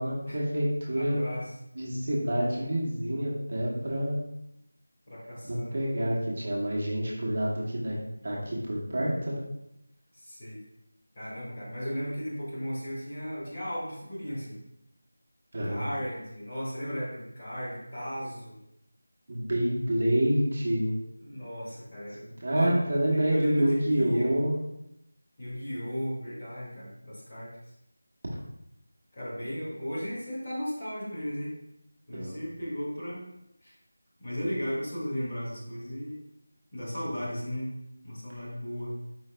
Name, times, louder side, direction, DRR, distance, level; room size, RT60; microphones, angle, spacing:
voice 1, 0.0-1.2 1.7-4.2 5.4-8.0 8.2-9.4 15.5-15.8 19.3-21.0 22.2-24.6 32.1-32.4, right 1 dB, 40° right, -4 dB, 0.9 m, -27 dB
voice 2, 0.9-1.5 5.1-5.7 10.1-10.6 11.1-14.6 15.6-18.6 21.2-24.4 25.4-27.6 29.1-31.5 32.1-33.2 33.6-33.7 34.2-36.2 36.7-37.7 38.0-38.9, equal, 25° left, -7 dB, 1.2 m, -36 dB
4.8 x 3.2 x 3.2 m, 0.85 s
figure-of-eight pair, 175°, 0 cm